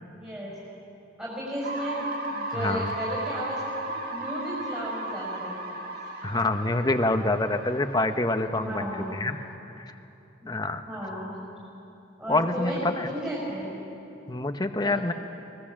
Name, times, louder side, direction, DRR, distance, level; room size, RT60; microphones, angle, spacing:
voice 1, 0.1-0.5 1.2-5.5 5.9-6.1 8.6-9.1 10.4-10.5 10.9-11.3 12.2-12.8 13.1-13.7 14.8-15.0, equal, 10° right, -6 dB, 5.6 m, -34 dB
sound 1, 1.6-9.5, right 1 dB, 50° right, 2.1 m, -36 dB
voice 2, 2.5-2.9 6.2-9.4 9.8-9.9 10.5-10.8 12.3-13.1 14.3-15.1, left 2 dB, 20° left, 7 dB, 0.9 m, -26 dB
24.0 x 19.0 x 7.4 m, 2.8 s
head